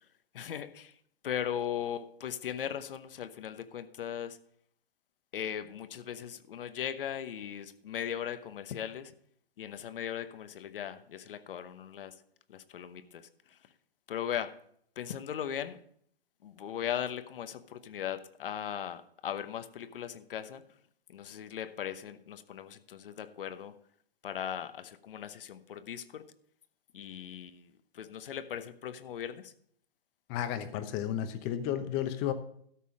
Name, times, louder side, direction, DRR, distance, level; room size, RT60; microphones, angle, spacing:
voice 1, 0.3-1.0 1.2-4.4 5.3-9.1 9.6-12.2 12.5-13.6 14.1-14.6 15.0-15.8 16.4-20.7 21.1-23.8 24.2-26.3 26.9-29.5, left 9 dB, 60° left, 1.0 m, -38 dB
voice 2, 30.3-32.3, left 10 dB, 25° left, 0.9 m, -32 dB
13.0 x 5.5 x 6.3 m
hypercardioid pair, 135°, 31 cm